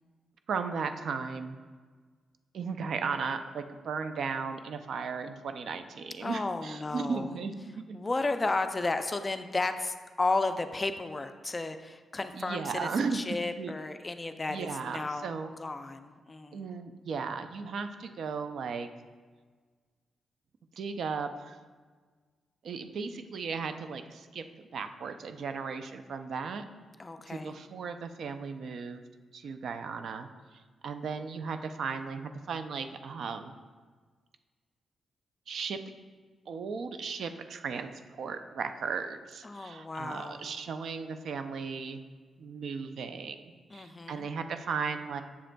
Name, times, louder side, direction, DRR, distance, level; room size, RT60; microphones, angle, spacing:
voice 1, 0.5-1.6 2.5-8.0 12.3-13.7 14.5-15.5 16.5-18.9 20.8-21.6 22.6-24.5 24.7-26.6 27.3-29.0 29.3-30.3 30.8-33.5 35.5-35.8 36.5-42.0 42.4-45.2, right 5 dB, 70° right, 9 dB, 0.4 m, -36 dB
voice 2, 6.2-7.4 7.9-15.3 15.6-16.7 27.0-27.6 39.4-40.5 43.7-44.3, left 3 dB, 25° left, 8 dB, 0.4 m, -33 dB
7.6 x 6.9 x 2.2 m, 1.5 s
cardioid pair, 105°, 0 cm